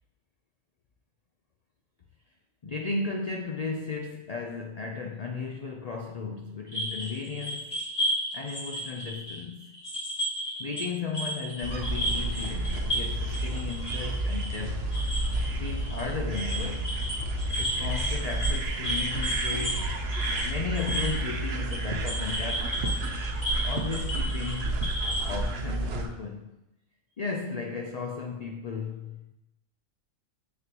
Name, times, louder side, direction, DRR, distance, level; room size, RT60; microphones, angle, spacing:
voice 1, 2.6-7.8 8.3-9.7 10.6-15.0 15.6-17.0 17.6-20.0 20.4-22.9 23.6-24.9 25.3-26.6 27.2-29.3, left 4 dB, 50° left, 2 dB, 0.5 m, -35 dB
sound 1, 6.7-10.9 11.1-25.4, equal, 35° left, 2.2 m, -33 dB
sound 2, 11.6-26.1, right 1 dB, 55° right, 0.9 m, -31 dB
7.4 x 6.4 x 3.0 m, 0.90 s
omnidirectional pair, 1.4 m